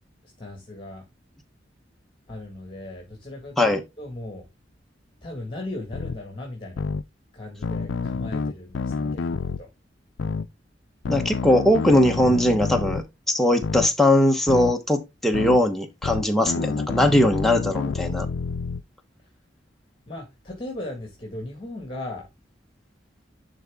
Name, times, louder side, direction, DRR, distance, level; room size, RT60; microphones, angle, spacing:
voice 1, 0.4-1.0 2.3-4.5 5.2-6.9 7.3-9.7 20.1-22.3, left 1 dB, 30° left, 1.8 m, -37 dB
sound 1, 5.9-6.2 6.8-7.0 7.6-9.6 10.2-10.5 11.1-13.0 13.6-13.9 14.5-14.7 15.3-15.6 16.0-18.8, left 4 dB, 90° left, 0.5 m, -28 dB
voice 2, 11.1-18.3, left 1 dB, ahead, 1.1 m, -20 dB
11.0 x 4.0 x 3.6 m
head